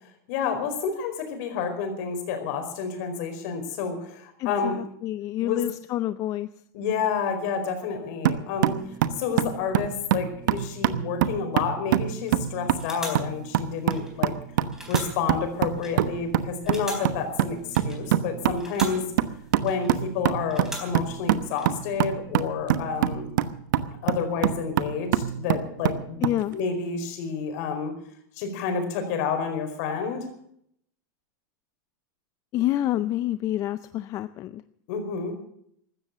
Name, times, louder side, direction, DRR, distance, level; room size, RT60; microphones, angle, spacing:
voice 1, 0.3-4.8 5.4-5.6 6.7-8.8 9.2-14.3 14.9-17.6 17.8-19.1 19.6-23.3 24.0-27.9 28.4-30.2 34.9-35.3, left 6 dB, 55° left, 6 dB, 4.8 m, -29 dB
voice 2, 4.4-6.5 26.2-26.6 32.5-34.6, left 13 dB, 30° left, 14 dB, 0.5 m, -28 dB
sound 1, 8.2-26.4, right 11 dB, 70° right, 1.1 m, -26 dB
sound 2, 12.2-12.4 12.8-14.4 14.7-16.3 16.7-18.3 18.5-20.1 20.5-21.7, right 1 dB, 5° right, 4.0 m, -41 dB
15.5 x 13.0 x 6.7 m, 0.68 s
supercardioid pair, 150°, 10 cm